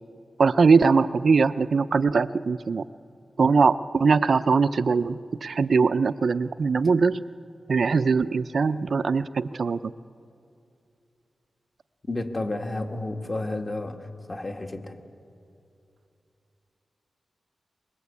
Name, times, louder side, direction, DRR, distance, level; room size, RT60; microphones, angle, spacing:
voice 1, 0.4-2.8 3.4-7.2 7.7-9.9, right 5 dB, 55° right, 13 dB, 0.5 m, -21 dB
voice 2, 12.1-15.0, left 2 dB, 30° left, 4 dB, 1.9 m, -31 dB
24.0 x 21.5 x 8.4 m, 2.6 s
wide cardioid pair, 105°, 0 cm